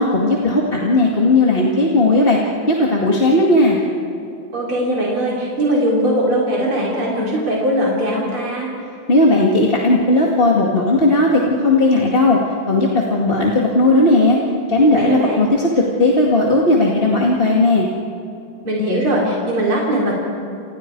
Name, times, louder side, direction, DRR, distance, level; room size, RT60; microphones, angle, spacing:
voice 1, 0.0-2.4 2.7-3.8 9.1-12.4 12.7-14.4 14.7-17.9, left 2 dB, 25° left, -3 dB, 2.2 m, -15 dB
voice 2, 4.5-8.7 14.9-15.5 18.6-20.1, equal, 85° right, -4 dB, 4.5 m, -20 dB
29.5 x 29.0 x 4.7 m, 2.6 s
omnidirectional pair, 2.3 m